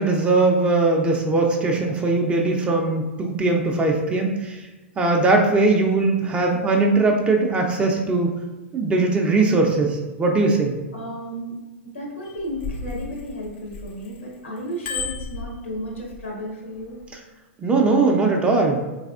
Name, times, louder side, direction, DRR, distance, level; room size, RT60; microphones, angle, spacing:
voice 1, 0.0-4.6 5.0-8.3 8.7-10.7 17.6-18.8, right 3 dB, 15° right, 1 dB, 0.5 m, -20 dB
voice 2, 10.9-11.6 11.8-17.0, equal, 90° left, -2 dB, 1.3 m, -33 dB
Bicycle bell, 12.3-14.2 14.6-16.2 16.9-17.1, left 4 dB, 55° left, 0.6 m, -33 dB
3.4 x 3.3 x 2.4 m, 1.1 s
hypercardioid pair, 115°, 7 cm